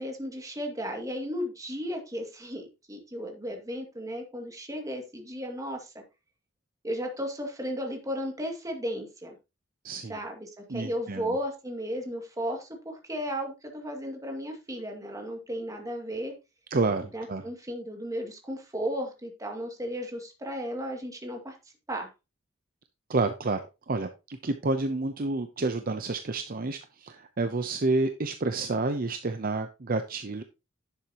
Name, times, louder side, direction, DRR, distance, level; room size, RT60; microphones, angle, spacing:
voice 1, 0.0-6.0 6.8-9.4 10.1-16.3 17.1-21.6 21.9-22.1, equal, 15° right, 2 dB, 2.2 m, -35 dB
voice 2, 9.8-10.2 10.7-11.4 16.7-17.5 23.1-30.4, right 3 dB, 45° right, 8 dB, 0.7 m, -29 dB
10.5 x 7.5 x 2.9 m, 0.27 s
head